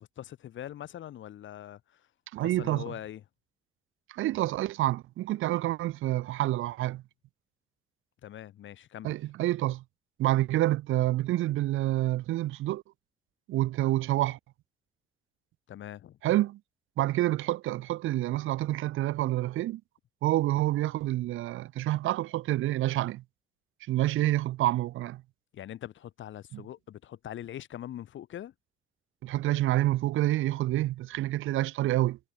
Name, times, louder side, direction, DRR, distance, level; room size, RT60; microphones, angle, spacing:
voice 1, 0.0-2.1 2.4-3.2 8.2-9.1 15.7-16.2 25.5-28.5, left 11 dB, 75° left, 6.0 m, -42 dB
voice 2, 2.3-2.9 4.1-7.0 9.0-9.8 10.2-12.8 13.5-14.4 16.2-16.6 17.0-19.8 20.2-23.2 23.9-25.2 26.5-26.6 29.2-32.2, right 15 dB, 90° right, 2.7 m, -28 dB
cardioid pair, 90°, 20 cm